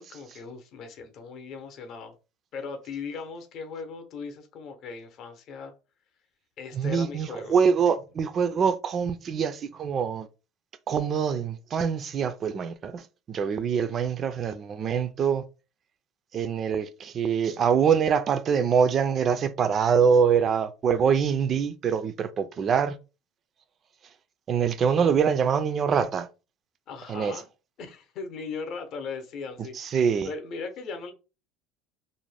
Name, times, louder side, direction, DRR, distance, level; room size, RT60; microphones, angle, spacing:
voice 1, 0.0-2.1 2.5-5.7 6.6-7.6 26.9-27.5 27.8-30.0 30.2-31.1, left 5 dB, 50° left, 0.6 m, -38 dB
voice 2, 6.7-10.3 10.9-13.0 13.3-15.4 16.3-23.0 24.5-26.3 27.1-27.4 29.7-30.3, right 6 dB, 35° right, 0.3 m, -24 dB
2.5 x 2.1 x 3.2 m
supercardioid pair, 115°, 0 cm